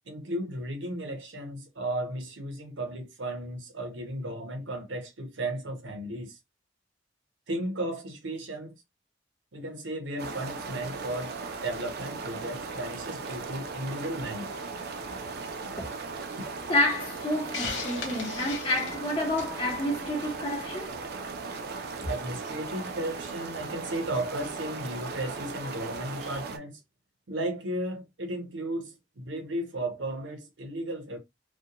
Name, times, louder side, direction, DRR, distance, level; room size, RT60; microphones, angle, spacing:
voice 1, 0.1-6.4 7.5-8.8 9.5-11.3 11.6-14.5 22.1-26.8 27.3-31.2, right 1 dB, 90° right, 0.9 m, -34 dB
sound 1, 10.2-26.6, right 4 dB, 55° right, 0.5 m, -37 dB
voice 2, 16.7-21.0 22.0-22.1, left 1 dB, 30° left, 0.8 m, -29 dB
Hiss, 17.5-19.6, left 5 dB, 90° left, 0.8 m, -36 dB
2.3 x 2.2 x 2.8 m
head